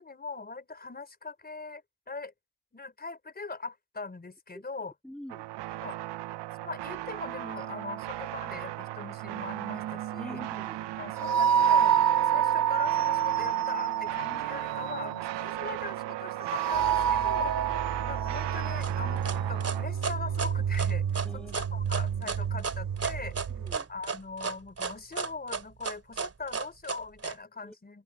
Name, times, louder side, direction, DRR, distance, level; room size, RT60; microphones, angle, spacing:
voice 1, 0.0-2.3 2.7-4.9 5.8-6.0 6.6-10.4 11.0-12.0 12.3-17.7 18.1-23.3 23.9-28.0, left 3 dB, 20° left, 4.4 m, -41 dB
voice 2, 5.0-5.5 10.2-10.8 21.2-21.6 23.5-23.9 27.6-27.7, equal, ahead, 2.3 m, -45 dB
sound 1, 5.3-19.9, right 15 dB, 65° right, 0.7 m, -38 dB
sound 2, 9.2-23.8, right 9 dB, 45° right, 1.8 m, -29 dB
sound 3, 18.8-27.4, right 5 dB, 30° right, 2.6 m, -33 dB
open air
cardioid pair, 125°, 46 cm